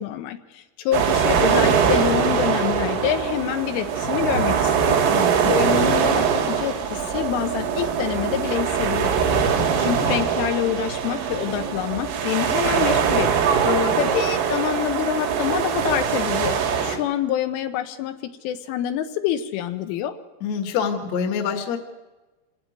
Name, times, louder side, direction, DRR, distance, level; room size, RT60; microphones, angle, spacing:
voice 1, 0.0-5.0 5.4-9.5 9.8-13.5 14.0-20.2, left 10 dB, 80° left, 7 dB, 3.3 m, -26 dB
sound 1, 0.9-17.0, right 7 dB, 80° right, 4.9 m, -22 dB
voice 2, 5.1-5.5 13.7-14.0 20.4-21.8, left 7 dB, 50° left, 4 dB, 2.1 m, -26 dB
26.5 x 12.5 x 9.2 m, 1.2 s
omnidirectional pair, 5.9 m